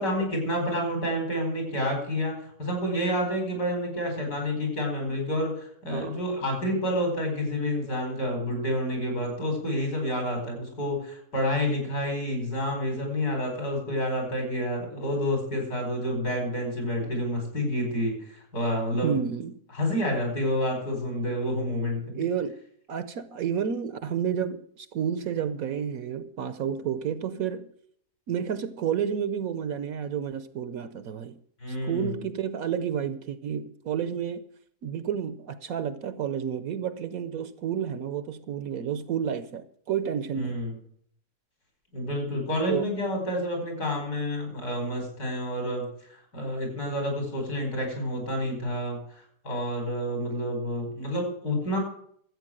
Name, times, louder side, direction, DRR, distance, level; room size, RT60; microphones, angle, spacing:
voice 1, 0.0-19.2 19.7-22.2 31.6-32.2 40.3-40.8 41.9-49.0 49.4-51.8, equal, 65° left, 5.3 m, -29 dB
voice 2, 5.9-6.2 17.0-17.1 19.0-19.6 22.1-22.6 22.9-27.7 28.3-31.4 31.8-34.4 34.8-40.6 42.7-42.8, right 8 dB, 65° right, 1.1 m, -30 dB
13.5 x 8.4 x 7.6 m
omnidirectional pair, 1.8 m